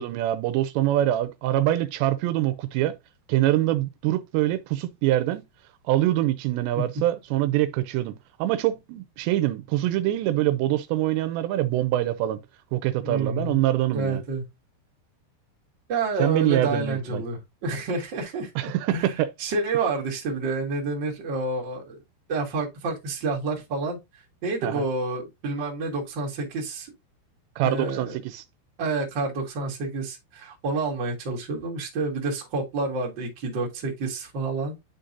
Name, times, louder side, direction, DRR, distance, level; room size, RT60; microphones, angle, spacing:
voice 1, 0.0-2.9 3.3-5.5 5.9-12.4 12.7-14.2 16.2-17.2 18.6-19.3 24.6-24.9 27.6-28.4, right 14 dB, 85° right, 2.8 m, -24 dB
voice 2, 13.0-13.6 13.9-14.4 15.9-22.0 22.3-24.0 24.4-26.9 27.6-28.2 28.8-34.8, right 3 dB, 35° right, 1.9 m, -29 dB
11.0 x 3.9 x 2.6 m
omnidirectional pair, 5.1 m